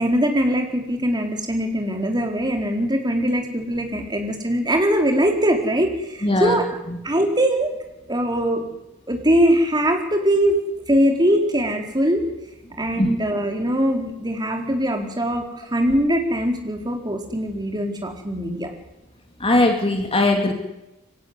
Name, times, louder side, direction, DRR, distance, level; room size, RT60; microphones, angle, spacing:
voice 1, 0.0-6.7 7.0-7.7 8.1-8.7 9.1-10.6 10.9-12.2 12.8-18.7, equal, 20° right, 2 dB, 4.3 m, -21 dB
voice 2, 6.2-6.6 6.9-7.0 13.0-13.1 19.4-20.5, left 2 dB, 25° left, 4 dB, 2.6 m, -19 dB
24.5 x 17.0 x 9.8 m, 0.92 s
head